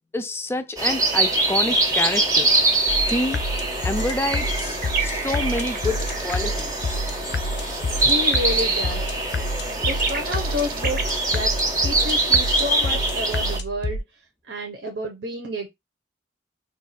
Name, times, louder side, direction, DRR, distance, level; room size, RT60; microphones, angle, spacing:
voice 1, 0.1-2.5 3.1-3.4 3.8-6.7, left 1 dB, 15° left, 0.3 m, -27 dB
sound 1, 0.8-13.6, right 2 dB, 20° right, 0.7 m, -24 dB
sound 2, 2.9-14.0, left 1 dB, 80° left, 0.5 m, -29 dB
sound 3, 4.0-6.6 7.2-11.0, right 5 dB, 50° right, 0.7 m, -32 dB
voice 2, 8.0-9.1 9.9-11.5 11.8-14.0 14.5-15.7, equal, 80° right, 0.8 m, -30 dB
2.5 x 2.3 x 4.0 m
head